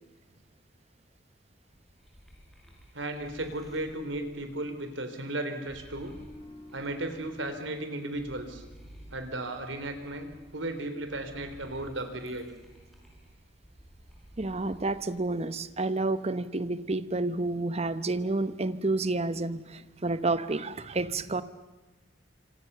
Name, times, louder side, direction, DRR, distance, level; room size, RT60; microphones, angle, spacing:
sound 1, 1.5-7.8 8.1-15.1 15.5-16.2, right 1 dB, ahead, 6.3 m, -54 dB
voice 1, 2.9-6.2 6.7-8.6 9.1-12.5, right 1 dB, 90° right, 8 dB, 3.7 m, -35 dB
sound 2, 5.9-9.2 9.5-9.7, left 1 dB, 25° left, 4.6 m, -53 dB
voice 2, 14.4-21.4, right 2 dB, 35° right, 13 dB, 1.0 m, -30 dB
27.0 x 26.5 x 6.9 m, 1.2 s
head